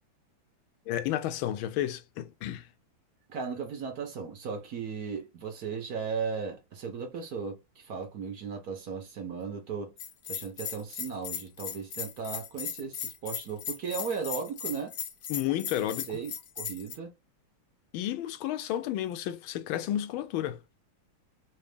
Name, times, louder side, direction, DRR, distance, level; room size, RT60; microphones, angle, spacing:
voice 1, 0.9-2.6 15.3-16.1 17.9-20.6, left 12 dB, 90° left, 1.4 m, -31 dB
voice 2, 3.3-9.9 10.3-14.9 16.1-17.1, right 5 dB, 55° right, 1.2 m, -36 dB
Bell, 10.0-17.0, left 8 dB, 65° left, 0.8 m, -37 dB
4.0 x 2.5 x 3.3 m
omnidirectional pair, 2.2 m